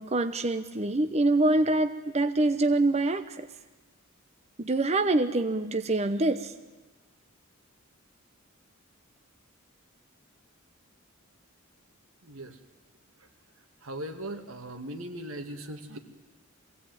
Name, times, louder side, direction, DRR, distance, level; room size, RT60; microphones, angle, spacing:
voice 1, 0.0-3.5 4.6-6.5, right 2 dB, 30° right, 9 dB, 0.8 m, -25 dB
voice 2, 13.8-16.0, right 1 dB, 90° right, 6 dB, 2.3 m, -38 dB
23.0 x 16.5 x 9.3 m, 1.2 s
head